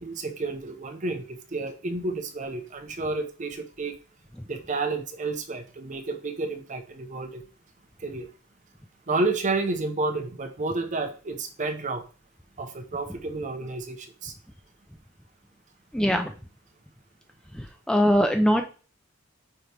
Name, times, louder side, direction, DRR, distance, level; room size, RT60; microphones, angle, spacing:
voice 1, 0.0-4.0 4.5-7.4 8.0-8.3 9.1-12.1 12.6-14.3, right 3 dB, 40° right, 6 dB, 0.8 m, -30 dB
voice 2, 15.9-16.3 17.5-18.6, equal, 5° left, 4 dB, 0.4 m, -22 dB
8.8 x 3.1 x 3.4 m, 0.38 s
head